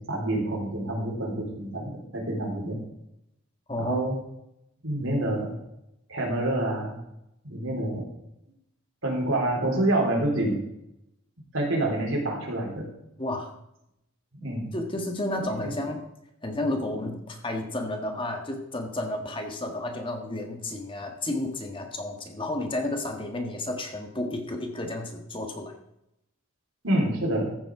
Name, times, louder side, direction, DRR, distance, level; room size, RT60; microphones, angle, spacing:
voice 1, 0.0-2.8 3.8-4.1 4.8-5.5 6.1-7.0 7.4-8.1 9.0-10.6 11.5-12.9 14.4-14.7 15.6-15.7 26.8-27.5, right 1 dB, 70° right, -1 dB, 3.8 m, -27 dB
voice 2, 3.7-4.0 13.2-13.5 14.7-16.0 16.4-25.7, left 1 dB, 25° left, 3 dB, 1.5 m, -31 dB
14.5 x 7.5 x 4.8 m, 0.82 s
head